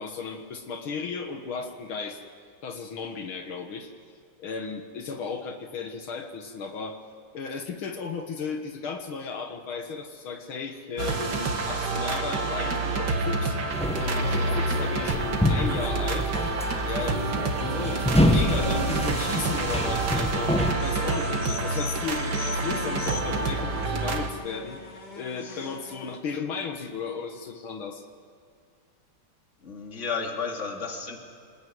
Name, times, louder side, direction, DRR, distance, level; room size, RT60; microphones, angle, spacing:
voice 1, 0.0-2.2 2.6-3.9 4.4-7.0 7.3-16.3 16.8-20.6 20.8-24.8 25.2-28.1, left 5 dB, 75° left, 5 dB, 2.3 m, -35 dB
sound 1, 11.0-24.3, right 3 dB, 55° right, 2.3 m, -28 dB
sound 2, 13.7-20.7, left 1 dB, 5° left, 0.9 m, -27 dB
sound 3, 20.8-26.2, left 4 dB, 55° left, 2.5 m, -40 dB
voice 2, 29.6-31.2, left 5 dB, 35° left, 2 dB, 2.7 m, -33 dB
26.5 x 20.5 x 9.5 m, 2.2 s
omnidirectional pair, 2.3 m